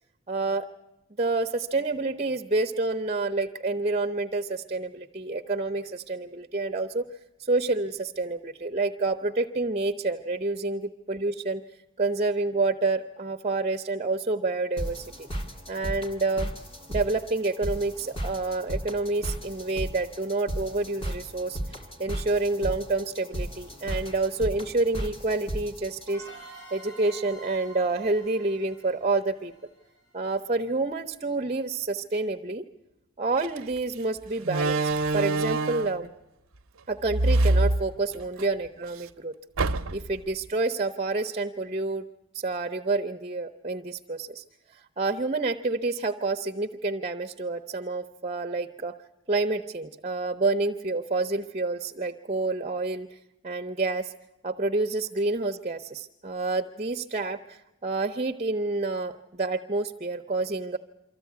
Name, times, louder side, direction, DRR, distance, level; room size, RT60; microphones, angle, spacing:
voice 1, 0.3-0.7 1.2-7.0 7.4-11.6 12.0-15.1 15.7-16.5 16.9-26.3 26.7-29.5 30.1-32.7 33.2-34.8 35.1-36.1 36.9-39.3 39.9-42.0 42.3-44.4 44.7-48.9 49.3-53.2 53.4-54.1 54.4-60.8, right 3 dB, 30° right, 6 dB, 0.7 m, -28 dB
sound 1, 14.8-26.1, right 1 dB, 25° left, 2.0 m, -35 dB
sound 2, 26.1-30.6, right 2 dB, 75° left, 7.8 m, -48 dB
Slam, 33.4-33.6 34.4-36.0 37.0-38.5 38.8-38.9 39.6-40.2, right 2 dB, 80° right, 0.7 m, -25 dB
24.5 x 14.5 x 9.4 m, 0.93 s
head